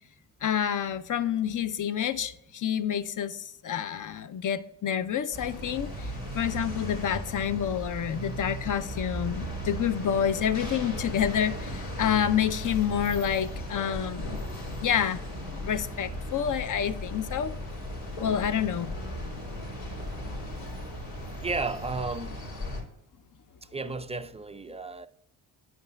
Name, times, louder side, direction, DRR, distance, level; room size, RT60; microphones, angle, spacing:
voice 1, 0.4-14.4 14.8-15.2 15.5-17.6 18.2-18.9, left 9 dB, 40° left, 0.6 m, -28 dB
sound 1, 5.3-22.8, equal, 85° left, 2.7 m, -36 dB
voice 2, 21.4-22.4 23.7-25.1, right 3 dB, 15° right, 0.3 m, -33 dB
9.5 x 5.9 x 2.2 m
supercardioid pair, 50°, 47 cm